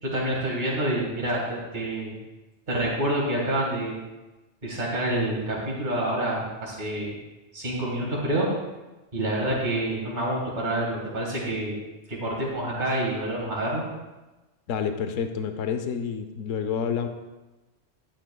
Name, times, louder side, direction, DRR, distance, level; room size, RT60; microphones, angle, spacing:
voice 1, 0.0-2.2 2.7-4.0 4.6-7.2 7.5-8.5 9.1-11.8 12.1-13.9, right 1 dB, 40° right, -5 dB, 2.1 m, -27 dB
voice 2, 14.7-17.1, left 7 dB, 85° left, 8 dB, 1.1 m, -28 dB
11.5 x 9.8 x 2.3 m, 1.1 s
omnidirectional pair, 1.3 m